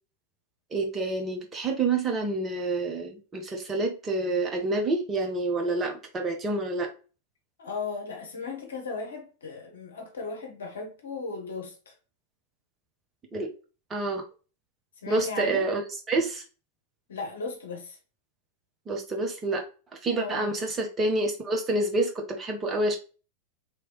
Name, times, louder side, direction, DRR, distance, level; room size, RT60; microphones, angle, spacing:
voice 1, 0.7-6.9 13.3-13.5 13.9-14.2 15.1-15.8 16.1-16.4 18.9-19.6 20.0-23.0, right 2 dB, 20° right, 1.0 m, -28 dB
voice 2, 7.6-11.9 15.0-15.7 17.1-18.0 20.1-20.5, left 4 dB, 65° left, 1.1 m, -36 dB
3.2 x 3.0 x 2.9 m
figure-of-eight pair, 90°, 0 cm